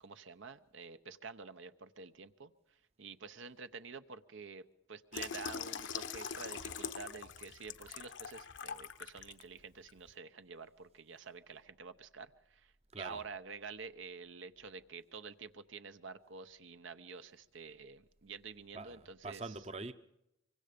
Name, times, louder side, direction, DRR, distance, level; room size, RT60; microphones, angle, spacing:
voice 1, 0.0-19.4, right 5 dB, 75° right, 0.8 m, -49 dB
Water tap faucet / Sink (filling or washing), 5.1-9.4 9.9-10.1, left 7 dB, 70° left, 0.9 m, -43 dB
voice 2, 12.9-13.2 18.7-19.9, right 3 dB, 30° right, 0.7 m, -44 dB
25.0 x 23.5 x 5.2 m
head